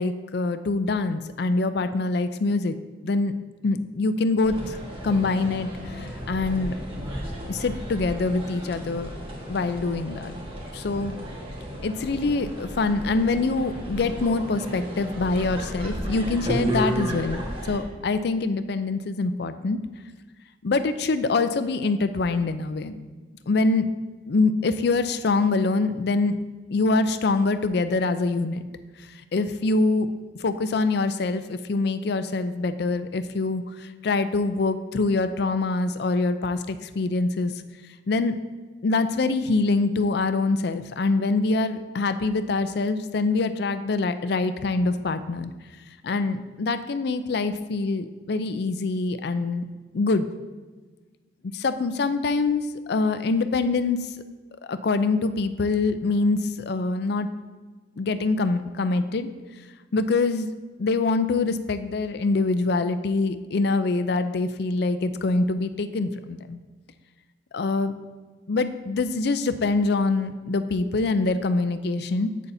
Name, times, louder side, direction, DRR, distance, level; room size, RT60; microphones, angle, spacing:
voice 1, 0.0-2.8 3.0-3.3 3.6-4.8 5.0-5.7 6.0-6.7 7.5-9.1 9.5-10.3 10.7-11.1 11.8-19.8 20.6-23.0 23.5-23.9 24.3-26.4 26.7-28.6 29.3-30.1 30.4-37.5 38.1-38.4 38.8-45.5 46.0-49.7 49.9-50.3 51.5-54.1 54.6-57.3 58.0-59.3 59.9-60.5 60.8-66.6 67.5-67.9 68.5-72.3, left 3 dB, 65° left, 11 dB, 0.5 m, -24 dB
sound 1, 4.4-17.8, equal, 30° right, 1.4 m, -33 dB
11.0 x 8.3 x 2.7 m, 1.3 s
head